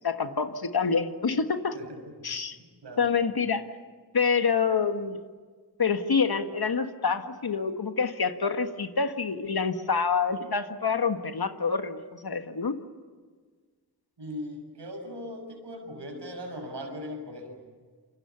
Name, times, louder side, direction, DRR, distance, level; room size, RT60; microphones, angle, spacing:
voice 1, 0.0-1.8 2.2-2.6 3.0-3.7 4.1-5.2 5.8-12.8, left 5 dB, 60° left, 8 dB, 1.6 m, -27 dB
voice 2, 1.7-2.5 2.8-3.1 14.2-17.6, left 1 dB, 90° right, 4 dB, 6.0 m, -39 dB
27.5 x 25.5 x 7.0 m, 1.5 s
wide cardioid pair, 60°, 41 cm